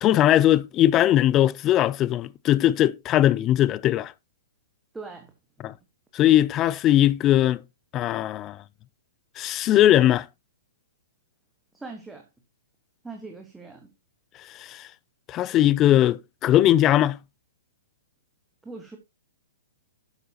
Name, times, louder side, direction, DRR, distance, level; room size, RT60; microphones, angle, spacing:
voice 1, 0.0-4.1 5.6-5.7 6.1-7.6 7.9-8.6 9.4-10.3 14.5-14.9 15.3-17.2, left 13 dB, 25° left, 0.4 m, -20 dB
voice 2, 4.9-5.3 5.6-5.7 11.7-12.3 13.0-13.9 18.6-19.0, right 3 dB, 5° right, 1.4 m, -40 dB
11.5 x 8.0 x 2.9 m
figure-of-eight pair, 115°, 0 cm